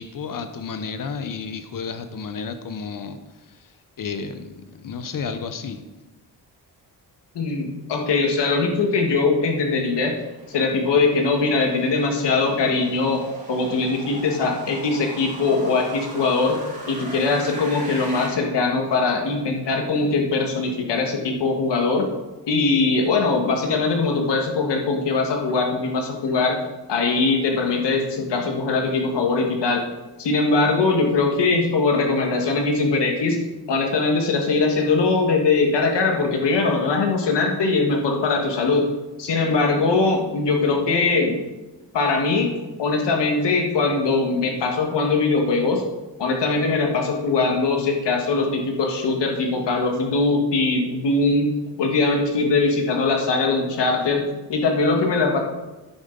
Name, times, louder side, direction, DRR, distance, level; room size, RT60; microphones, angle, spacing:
voice 1, 0.0-3.2 3.5-3.7 4.0-5.8, left 5 dB, 55° left, 9 dB, 1.0 m, -32 dB
voice 2, 7.3-10.2 10.5-13.2 13.5-16.6 16.9-22.1 22.5-26.6 26.9-29.8 30.2-33.4 33.7-38.9 39.2-41.4 41.9-42.5 42.8-45.8 46.2-51.5 51.8-54.2 54.5-55.4, left 3 dB, 85° left, 2 dB, 1.8 m, -21 dB
sound 1, 9.0-18.3, right 1 dB, 20° right, 2.6 m, -40 dB
10.0 x 9.2 x 4.0 m, 1.1 s
wide cardioid pair, 150°, 41 cm